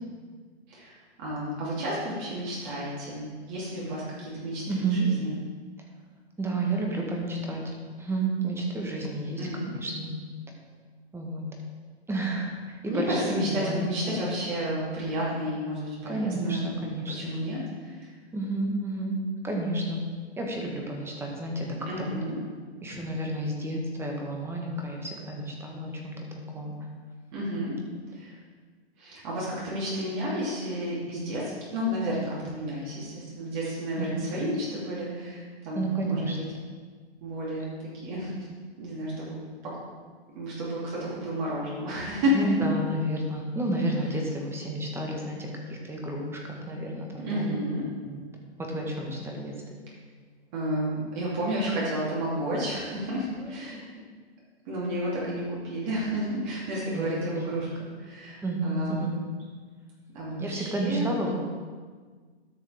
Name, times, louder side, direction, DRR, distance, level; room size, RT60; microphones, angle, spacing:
voice 1, 0.7-4.6 4.9-5.3 9.4-9.7 12.9-18.1 21.8-22.4 27.3-27.7 28.1-28.3 29.0-36.4 37.2-38.3 38.8-39.4 39.6-39.7 40.3-42.5 47.2-47.8 50.5-53.8 54.6-59.0 60.1-61.1, equal, 45° right, -6 dB, 3.1 m, -31 dB
voice 2, 4.7-5.1 6.4-9.4 9.7-10.1 11.1-11.4 12.1-14.2 16.0-17.3 18.3-19.2 19.4-20.0 20.4-21.7 22.0-22.1 22.8-26.2 26.5-26.7 34.0-34.4 35.7-36.4 42.3-47.5 48.0-48.3 48.6-49.6 53.4-53.8 56.9-57.5 58.4-59.1 60.4-61.3, right 2 dB, 5° right, 0 dB, 1.4 m, -31 dB
12.5 x 6.5 x 3.5 m, 1.5 s
hypercardioid pair, 130°, 33 cm